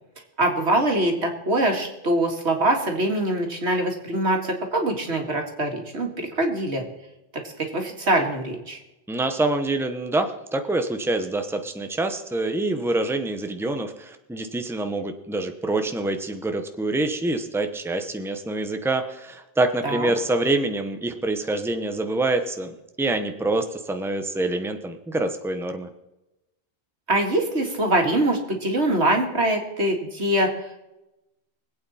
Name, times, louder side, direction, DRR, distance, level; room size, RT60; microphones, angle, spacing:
voice 1, 0.4-6.9 7.3-8.8 19.8-20.1 27.1-30.8, right 1 dB, 85° right, 3 dB, 2.4 m, -23 dB
voice 2, 9.1-25.9, right 2 dB, ahead, 6 dB, 1.0 m, -26 dB
24.5 x 8.6 x 4.3 m, 0.97 s
omnidirectional pair, 1.1 m